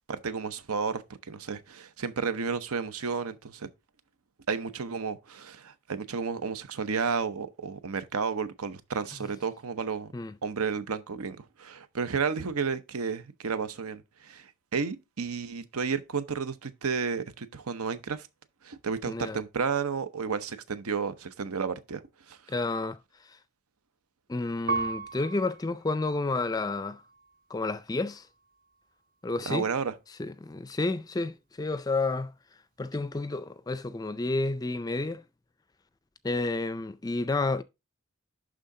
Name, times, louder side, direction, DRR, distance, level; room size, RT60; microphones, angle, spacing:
voice 1, 0.1-3.7 4.5-10.1 10.4-18.3 18.6-22.0 22.3-22.4 29.5-29.9, right 5 dB, 90° right, 0.8 m, -32 dB
voice 2, 19.1-19.4 22.5-23.0 24.3-27.0 27.5-28.3 29.2-29.7 30.2-32.3 32.8-35.2 36.2-37.6, left 3 dB, 15° left, 0.3 m, -30 dB
Piano, 24.7-27.4 28.1-28.8, right 4 dB, 40° right, 0.6 m, -37 dB
11.0 x 3.7 x 3.7 m
head